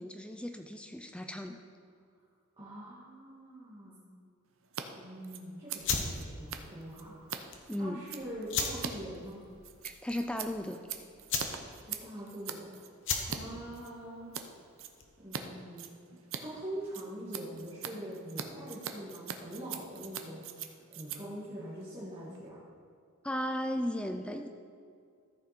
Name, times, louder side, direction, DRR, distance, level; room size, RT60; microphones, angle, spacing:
voice 1, 0.0-1.6 7.7-8.0 9.8-10.8 23.2-24.5, left 1 dB, 5° left, 5 dB, 0.3 m, -35 dB
voice 2, 2.6-4.0 5.0-7.3 7.8-9.4 11.7-12.7 13.2-14.3 15.2-15.9 16.4-20.7 20.9-22.6, right 1 dB, 25° right, -9 dB, 2.2 m, -43 dB
Scissors, 4.6-4.8 5.1-13.4 13.7-14.5 14.8-15.4 15.7-22.5, right 8 dB, 65° right, 0.7 m, -43 dB
sound 1, 5.8-15.3, left 5 dB, 55° left, 1.0 m, -38 dB
13.5 x 6.2 x 4.4 m, 2.3 s
head